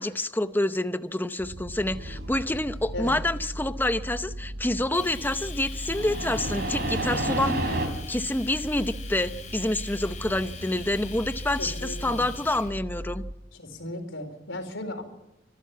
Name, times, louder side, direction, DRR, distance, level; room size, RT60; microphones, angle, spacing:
voice 1, 0.0-13.3, left 1 dB, 10° left, 11 dB, 0.7 m, -28 dB
sound 1, 1.4-13.3, right 1 dB, 75° right, 1.2 m, -38 dB
sound 2, 1.9-3.0 5.8-7.9, right 1 dB, 55° right, 3.9 m, -30 dB
Domestic sounds home sounds, 4.9-12.7, left 6 dB, 40° left, 4.3 m, -44 dB
voice 2, 11.5-12.2 13.5-15.0, left 1 dB, 85° left, 6 dB, 4.4 m, -36 dB
26.0 x 12.0 x 8.5 m, 0.89 s
head